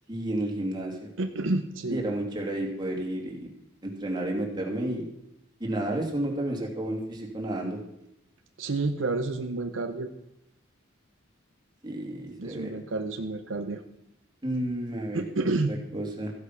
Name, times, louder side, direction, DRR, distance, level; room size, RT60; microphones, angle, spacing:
voice 1, 0.1-1.1 1.9-3.5 3.8-5.0 5.6-7.8 11.8-12.8 14.4-15.2 15.7-16.3, right 1 dB, 20° right, -1 dB, 2.6 m, -31 dB
voice 2, 1.2-2.0 8.6-10.1 12.4-13.8 15.1-15.7, right 2 dB, 75° right, 7 dB, 0.8 m, -29 dB
14.5 x 8.2 x 5.9 m, 0.83 s
head